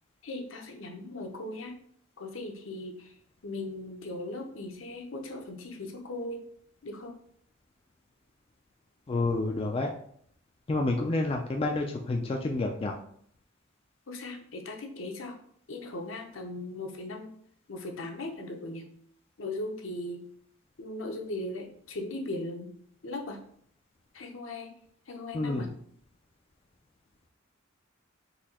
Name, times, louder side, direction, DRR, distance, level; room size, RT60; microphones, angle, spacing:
voice 1, 0.2-1.8 2.2-3.1 3.4-6.4 6.8-7.2 14.1-15.4 15.7-17.3 17.7-18.9 19.4-20.2 20.8-22.7 23.0-23.4 24.1-24.7 25.1-25.7, left 2 dB, 65° left, 4 dB, 0.7 m, -38 dB
voice 2, 9.1-9.9 10.7-12.9 25.3-25.7, left 2 dB, 25° left, 1 dB, 0.3 m, -29 dB
4.1 x 2.7 x 4.2 m, 0.63 s
head